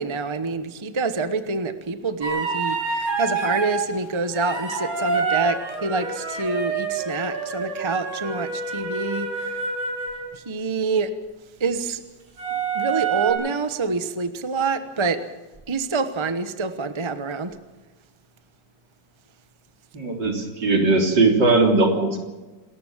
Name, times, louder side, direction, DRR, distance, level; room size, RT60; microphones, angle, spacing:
voice 1, 0.0-9.6 10.3-11.1 11.6-12.0 12.5-15.2 15.7-17.6, right 4 dB, 20° right, 10 dB, 0.9 m, -27 dB
sound 1, 2.2-3.8 4.3-10.2 12.4-13.3, right 5 dB, 50° right, 6.7 m, -27 dB
voice 2, 19.9-22.2, right 3 dB, 75° right, 2 dB, 4.2 m, -19 dB
28.0 x 14.0 x 7.4 m, 1.2 s
omnidirectional pair, 1.9 m